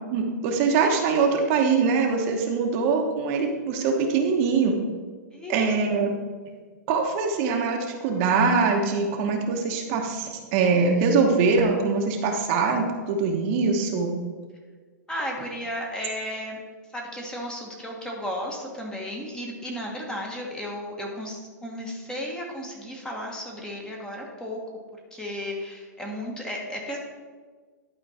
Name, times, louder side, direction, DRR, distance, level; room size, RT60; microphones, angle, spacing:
voice 1, 0.1-4.8 5.5-6.1 6.9-14.1, right 4 dB, 45° right, 2 dB, 1.1 m, -23 dB
voice 2, 5.3-5.7 15.1-16.6 16.9-24.6 24.9-27.0, equal, 5° left, -1 dB, 1.3 m, -34 dB
11.0 x 4.4 x 4.3 m, 1.5 s
hypercardioid pair, 130°, 10 cm